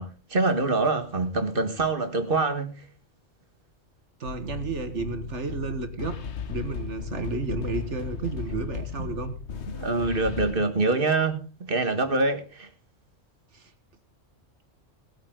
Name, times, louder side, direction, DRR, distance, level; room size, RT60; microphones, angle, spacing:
voice 1, 0.0-2.8 9.7-11.4 11.7-12.7, right 3 dB, 45° right, 1.9 m, -25 dB
sound 1, 4.2-10.5, left 7 dB, 65° left, 1.3 m, -35 dB
voice 2, 4.2-6.2 6.5-9.3 13.5-13.7, right 4 dB, 65° right, 1.8 m, -32 dB
18.5 x 9.2 x 3.8 m
omnidirectional pair, 1.3 m